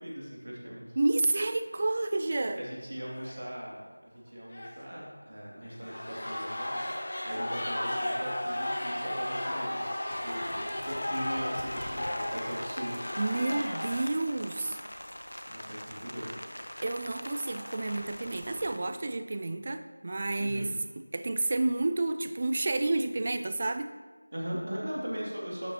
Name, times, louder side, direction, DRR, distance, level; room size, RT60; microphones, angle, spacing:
voice 1, 0.0-1.0 2.6-9.8 10.2-13.0 15.4-16.3 20.4-20.7 24.3-25.7, equal, 55° right, -4 dB, 2.7 m, -39 dB
voice 2, 1.0-2.6 13.2-14.8 16.8-20.7 21.0-23.9, right 2 dB, 30° right, 9 dB, 0.4 m, -30 dB
sound 1, 1.8-2.0 2.3-2.4 3.0-3.4 4.5-5.0 5.6-14.0, left 1 dB, 45° left, 1.1 m, -35 dB
Rain, 10.1-18.8, equal, 75° left, 1.0 m, -43 dB
11.5 x 7.5 x 3.0 m, 1.3 s
figure-of-eight pair, 170°, 0 cm